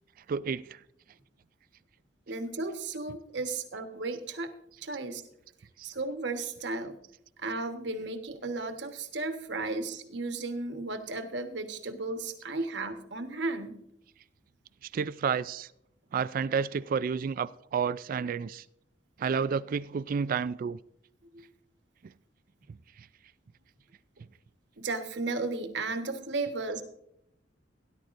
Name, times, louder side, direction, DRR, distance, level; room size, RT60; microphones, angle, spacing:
voice 1, 0.3-0.8 3.5-3.6 14.9-15.7 16.1-18.6 19.2-20.8 23.0-23.1, right 6 dB, 50° right, 0.3 m, -30 dB
voice 2, 2.3-4.5 4.8-5.2 5.8-7.0 7.4-13.8 21.3-21.5 24.8-26.8, right 3 dB, 70° right, 1.3 m, -34 dB
17.5 x 11.0 x 2.6 m
head